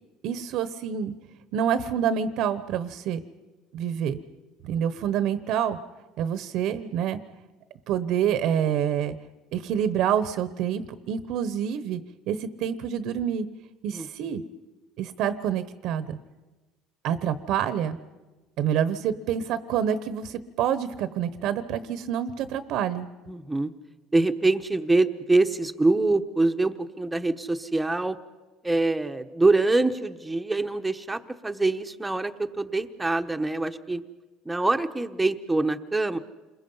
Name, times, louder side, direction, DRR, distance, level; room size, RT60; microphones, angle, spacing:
voice 1, 0.2-1.1 1.5-3.2 3.7-4.2 4.6-5.8 6.2-7.2 7.9-9.1 9.5-12.0 12.3-13.5 13.8-14.4 15.0-16.2 17.0-18.0 18.6-23.1, right 9 dB, 65° right, 13 dB, 1.0 m, -27 dB
voice 2, 23.3-23.7 24.1-28.2 28.6-34.0 34.4-36.2, right 2 dB, 10° right, 7 dB, 1.1 m, -24 dB
28.0 x 22.0 x 5.6 m, 1.2 s
cardioid pair, 120°, 0 cm